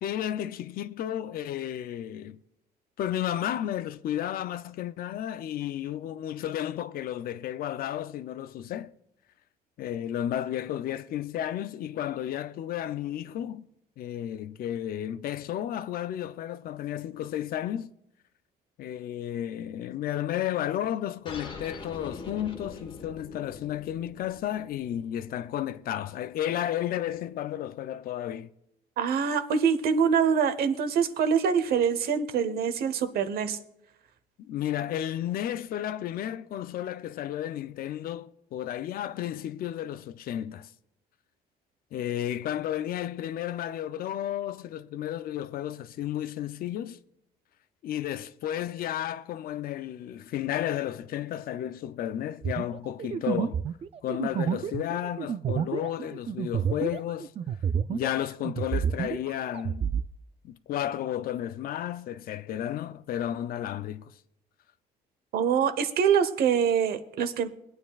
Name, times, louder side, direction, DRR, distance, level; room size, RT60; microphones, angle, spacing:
voice 1, 0.0-2.4 3.0-8.9 9.8-13.7 14.0-17.9 18.8-28.5 34.5-40.7 41.9-47.0 47.8-53.6 54.0-57.3 57.9-59.8 60.4-64.1, left 11 dB, 60° left, 0.5 m, -32 dB
sound 1, 21.2-26.3, left 3 dB, 30° left, 1.4 m, -44 dB
voice 2, 29.0-33.6 65.3-67.5, right 7 dB, 65° right, 1.0 m, -25 dB
sound 2, 52.4-58.2 58.4-60.1, right 8 dB, 35° right, 0.4 m, -30 dB
22.5 x 9.2 x 2.4 m
cardioid pair, 110°, 17 cm